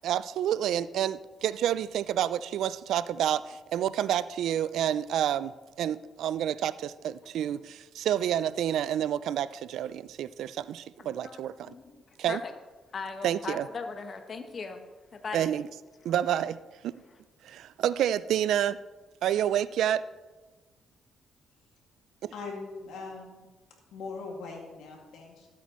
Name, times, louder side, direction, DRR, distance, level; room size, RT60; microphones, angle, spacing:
voice 1, 0.0-11.7 12.2-12.4 13.2-13.7 15.3-15.7 16.0-16.6 16.8-16.9 17.4-18.8 19.2-20.0 22.2-22.3, right 10 dB, 75° right, 16 dB, 0.3 m, -29 dB
voice 2, 11.0-12.5 12.9-14.8 15.1-15.5 16.1-16.2, left 4 dB, 45° left, 6 dB, 1.0 m, -39 dB
voice 3, 22.3-23.5 23.9-25.5, left 4 dB, 80° left, 0 dB, 2.3 m, -41 dB
13.0 x 8.2 x 3.1 m, 1.2 s
cardioid pair, 90°, 0 cm